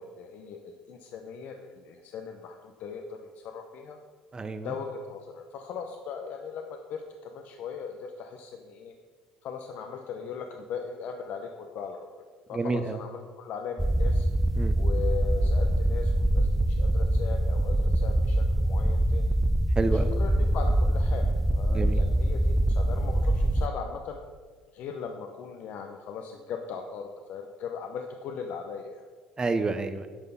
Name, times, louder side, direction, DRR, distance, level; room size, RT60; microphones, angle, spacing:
voice 1, 0.0-4.0 4.6-8.9 9.4-14.3 14.8-19.3 19.9-21.3 21.6-24.2 24.7-29.1, left 6 dB, 65° left, 5 dB, 0.7 m, -39 dB
voice 2, 4.3-4.7 12.5-13.0 14.6-14.7 19.8-20.0 21.7-22.0 29.4-30.1, right 3 dB, 25° right, 9 dB, 0.9 m, -28 dB
sound 1, 13.8-23.7, right 1 dB, 5° right, 0.4 m, -24 dB
9.8 x 5.4 x 5.5 m, 1.5 s
supercardioid pair, 75°, 3 cm